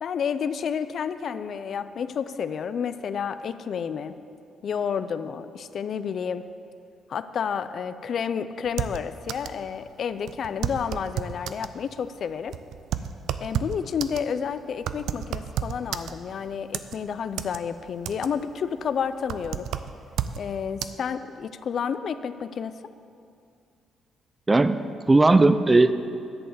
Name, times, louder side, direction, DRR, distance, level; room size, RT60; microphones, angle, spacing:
voice 1, 0.0-4.1 4.6-6.4 7.1-12.6 13.4-19.7 20.4-22.8, left 7 dB, 55° left, 12 dB, 0.4 m, -30 dB
sound 1, 8.6-9.6 9.9-10.0 10.3-11.7 12.3-16.4 16.7-17.6 17.9-18.5 18.8-20.4 20.8-20.9, right 10 dB, 80° right, 0.4 m, -31 dB
voice 2, 24.5-26.1, right 2 dB, 15° right, 11 dB, 0.4 m, -18 dB
10.5 x 5.5 x 8.1 m, 2.4 s
cardioid pair, 125°, 0 cm